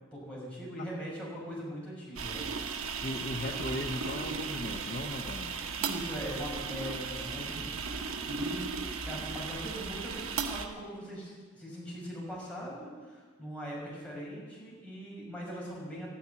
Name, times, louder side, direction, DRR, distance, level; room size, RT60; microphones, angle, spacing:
voice 1, 0.1-2.5 5.8-8.7 9.1-16.1, equal, 5° left, -6 dB, 6.0 m, -41 dB
sound 1, 2.2-10.7, right 5 dB, 85° right, 1.2 m, -36 dB
voice 2, 3.0-5.7, left 1 dB, 40° left, 2 dB, 1.0 m, -37 dB
12.5 x 10.5 x 9.7 m, 1.5 s
head